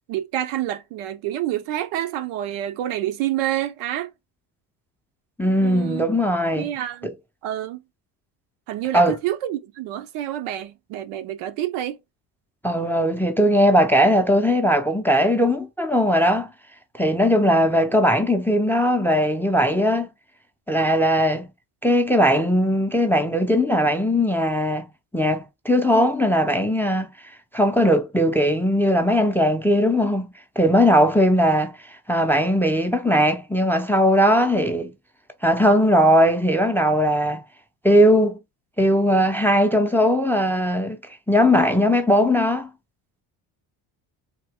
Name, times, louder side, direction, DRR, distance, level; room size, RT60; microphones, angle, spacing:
voice 1, 0.1-4.1 5.6-6.1 6.4-7.1 7.4-7.8 8.7-12.0 17.3-17.6, right 12 dB, 80° right, 0.7 m, -28 dB
voice 2, 5.4-6.7 7.0-7.1 8.9-9.2 12.6-16.5 17.0-20.1 20.7-21.5 21.8-24.9 25.1-27.1 27.5-34.9 35.4-37.4 37.8-38.4 38.8-41.0 41.3-42.7, equal, 5° left, 0.4 m, -19 dB
2.9 x 2.7 x 3.4 m
supercardioid pair, 70°, 49 cm